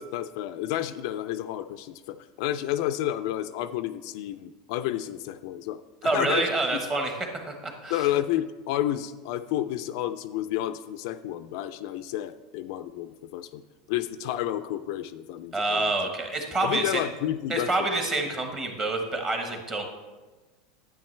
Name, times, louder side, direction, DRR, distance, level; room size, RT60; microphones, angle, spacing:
voice 1, 0.0-6.4 7.9-13.6 13.9-15.8 16.6-17.7, left 12 dB, 55° left, 11 dB, 0.3 m, -30 dB
voice 2, 6.0-8.1 15.5-17.0 17.5-19.8, right 2 dB, 20° right, 3 dB, 1.1 m, -27 dB
9.1 x 8.8 x 3.2 m, 1.2 s
supercardioid pair, 160°, 3 cm